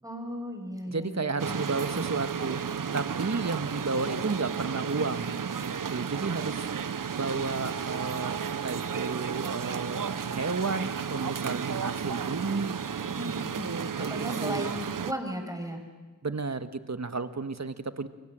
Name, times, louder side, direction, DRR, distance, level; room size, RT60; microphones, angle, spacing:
voice 1, 0.0-2.0 13.0-13.7 14.0-15.8, equal, 10° right, 2 dB, 6.6 m, -36 dB
voice 2, 0.9-2.6 2.9-6.7 7.1-12.8 13.3-14.7 16.2-18.1, right 4 dB, 55° right, 10 dB, 1.5 m, -32 dB
sound 1, 1.4-15.1, right 7 dB, 75° right, 0.8 m, -33 dB
29.5 x 24.5 x 7.6 m, 1.3 s
wide cardioid pair, 55°, 33 cm